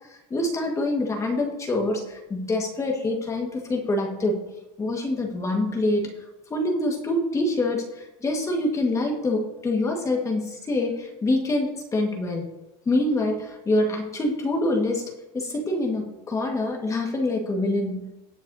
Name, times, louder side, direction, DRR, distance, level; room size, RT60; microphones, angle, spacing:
voice 1, 0.3-4.4 4.8-6.1 6.5-12.4 12.9-18.0, left 2 dB, 15° left, 1 dB, 1.6 m, -25 dB
17.0 x 7.6 x 2.7 m, 0.97 s
cardioid pair, 160°, 19 cm